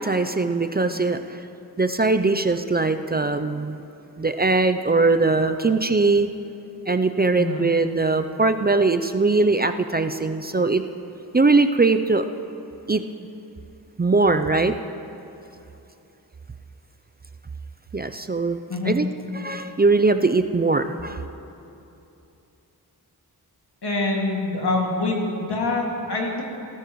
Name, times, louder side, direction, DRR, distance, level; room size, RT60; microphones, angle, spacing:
voice 1, 0.0-1.5 1.8-3.8 4.2-6.3 6.9-10.8 11.3-12.2 12.9-13.0 14.0-14.7 17.9-18.6 18.8-21.2, right 3 dB, 25° right, 8 dB, 0.5 m, -21 dB
voice 2, 7.3-7.7 18.7-18.9 23.8-26.4, left 3 dB, 75° left, -2 dB, 2.3 m, -25 dB
18.5 x 13.0 x 3.1 m, 2.8 s
cardioid pair, 50°, 40 cm